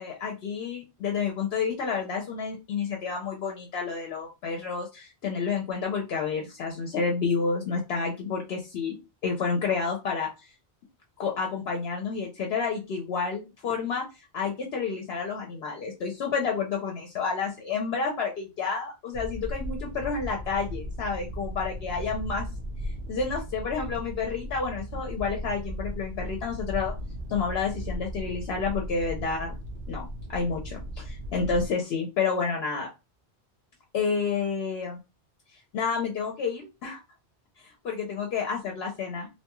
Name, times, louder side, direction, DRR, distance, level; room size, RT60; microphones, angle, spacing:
voice 1, 0.0-10.3 11.2-14.0 14.3-22.5 23.1-26.9 27.3-29.5 29.9-32.9 33.9-35.0 35.7-37.0 37.8-39.3, left 5 dB, 75° left, 1 dB, 0.8 m, -30 dB
sound 1, 19.1-31.7, equal, 55° right, 0.7 m, -36 dB
2.7 x 2.2 x 2.9 m, 0.26 s
omnidirectional pair, 1.1 m